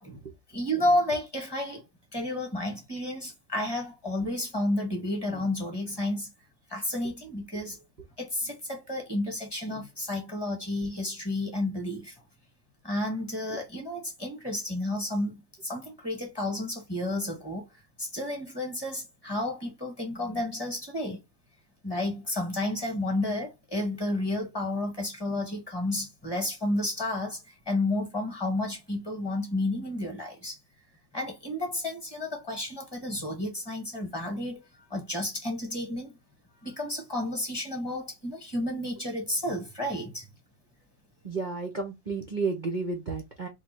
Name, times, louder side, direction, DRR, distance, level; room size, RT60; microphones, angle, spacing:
voice 1, 0.5-1.8 2.1-6.3 6.7-7.8 8.2-12.1 12.8-17.6 18.0-21.2 21.8-27.4 27.7-30.6 31.1-36.1 36.6-40.2, left 1 dB, 15° left, 1.1 m, -31 dB
voice 2, 41.2-43.5, right 4 dB, 90° right, 0.4 m, -32 dB
3.3 x 2.3 x 4.2 m
omnidirectional pair, 2.0 m